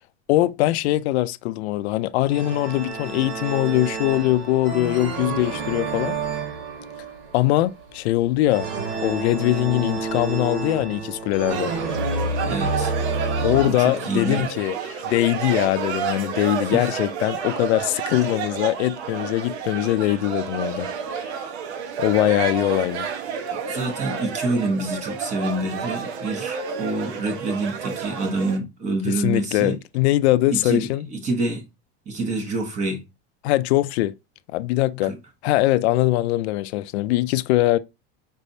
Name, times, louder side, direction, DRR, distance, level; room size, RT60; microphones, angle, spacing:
voice 1, 0.3-6.2 7.3-8.7 9.0-11.7 13.4-20.9 22.0-23.1 29.1-31.1 33.4-34.1 34.5-35.1 35.4-37.8, left 16 dB, 80° left, 0.5 m, -22 dB
sound 1, 2.3-13.6, right 3 dB, 60° right, 1.7 m, -29 dB
sound 2, 11.5-28.6, right 6 dB, 90° right, 1.0 m, -30 dB
voice 2, 12.5-12.9 13.6-14.5 16.6-16.8 23.7-29.8 30.5-31.6 32.1-33.0 35.0-35.2, right 2 dB, 20° right, 1.0 m, -27 dB
5.3 x 3.3 x 2.6 m
supercardioid pair, 165°, 32 cm